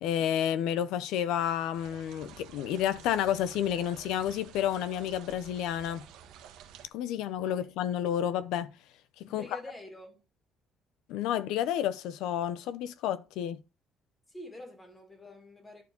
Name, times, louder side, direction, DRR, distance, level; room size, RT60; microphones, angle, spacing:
voice 1, 0.0-6.1 6.9-8.7 9.2-9.5 11.1-13.6, left 10 dB, 90° left, 0.8 m, -30 dB
sound 1, 1.7-6.9, right 9 dB, 90° right, 1.4 m, -51 dB
voice 2, 9.3-10.2 14.3-15.8, left 1 dB, 10° left, 2.4 m, -46 dB
11.0 x 4.6 x 5.3 m
cardioid pair, 175°, 0 cm